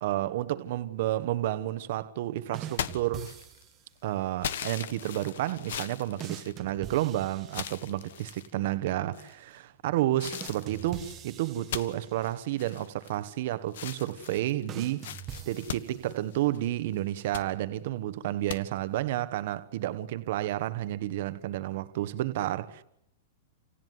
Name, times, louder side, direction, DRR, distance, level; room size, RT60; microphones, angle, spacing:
voice 1, 0.0-3.3 4.0-15.1 15.5-22.8, right 14 dB, 45° right, 1.3 m, -31 dB
sound 1, 2.5-3.9 6.2-8.2 10.3-12.5 14.7-16.3, right 9 dB, 20° right, 1.2 m, -44 dB
sound 2, 2.7-3.7 4.4-7.0 7.5-8.5 9.1-9.6 10.2-13.4 13.7-16.7 17.1-17.5 18.5-18.6, left 9 dB, 65° left, 1.4 m, -39 dB
28.5 x 19.0 x 9.5 m
supercardioid pair, 180°, 0 cm